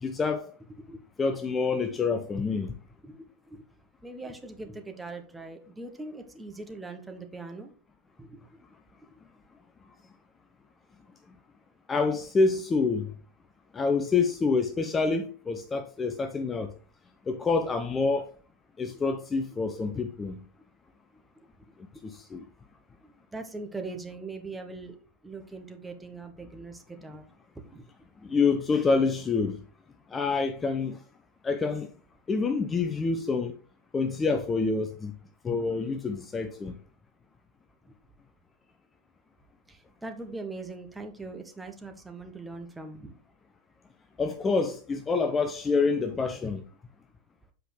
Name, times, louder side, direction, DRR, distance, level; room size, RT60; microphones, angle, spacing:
voice 1, 0.0-0.5 1.2-2.8 11.9-13.1 13.7-16.7 17.3-18.3 18.8-20.4 22.0-22.5 28.2-29.6 30.1-31.0 31.4-31.9 32.3-33.5 33.9-35.1 35.4-36.7 44.2-46.6, left 4 dB, 15° left, 0.5 m, -27 dB
voice 2, 3.0-3.6 4.0-7.7 8.2-8.6 9.0-9.1 18.9-19.0 21.1-21.8 23.0-25.0 25.2-27.2 27.5-27.8 37.9-38.0 39.7-43.1, right 3 dB, 5° right, 1.0 m, -41 dB
7.7 x 5.0 x 3.2 m
figure-of-eight pair, 90°, 0 cm